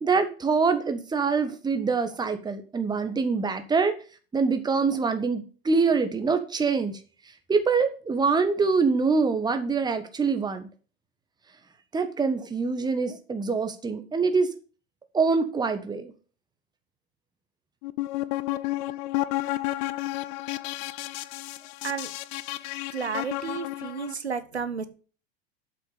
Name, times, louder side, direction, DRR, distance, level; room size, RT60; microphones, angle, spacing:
voice 1, 0.0-3.9 4.3-7.0 7.5-10.7 11.9-14.5 15.1-16.1, right 4 dB, 15° right, 8 dB, 1.3 m, -25 dB
sound 1, 17.8-24.1, left 17 dB, 45° left, 0.6 m, -31 dB
voice 2, 22.9-24.9, right 6 dB, 90° right, 11 dB, 1.1 m, -32 dB
7.7 x 5.9 x 6.7 m, 0.38 s
figure-of-eight pair, 90°, 32 cm